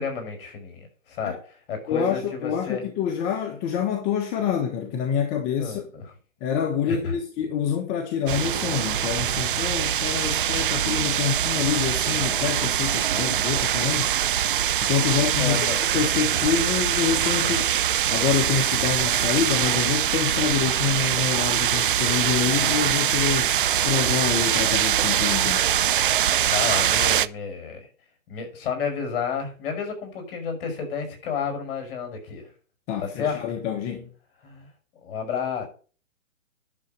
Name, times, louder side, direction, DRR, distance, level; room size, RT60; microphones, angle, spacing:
voice 1, 0.0-1.4 1.7-2.8 5.6-6.0 6.9-7.1 15.4-15.8 17.4-17.6 26.4-27.9 28.3-32.5 33.0-33.4 34.4-34.7 35.0-35.7, left 6 dB, 40° left, 6.2 m, -31 dB
voice 2, 1.9-5.8 6.4-14.2 14.8-15.7 15.9-17.6 18.1-23.6 23.8-25.6 32.9-34.1, left 7 dB, 20° left, 1.3 m, -26 dB
sound 1, 8.3-27.3, right 10 dB, 40° right, 0.5 m, -23 dB
10.5 x 7.3 x 8.0 m
hypercardioid pair, 145°, 41 cm